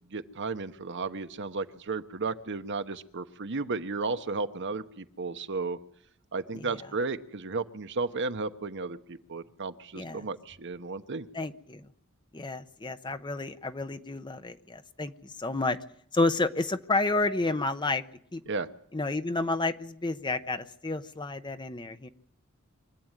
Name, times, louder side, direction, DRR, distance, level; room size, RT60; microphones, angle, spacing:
voice 1, 0.1-5.8 6.3-11.3 18.5-18.7, right 3 dB, 55° right, 9 dB, 1.1 m, -34 dB
voice 2, 11.3-11.9 12.3-15.8 16.1-18.0 18.3-18.4 18.9-22.1, left 3 dB, 20° left, 11 dB, 0.8 m, -30 dB
24.5 x 13.5 x 9.1 m, 0.69 s
head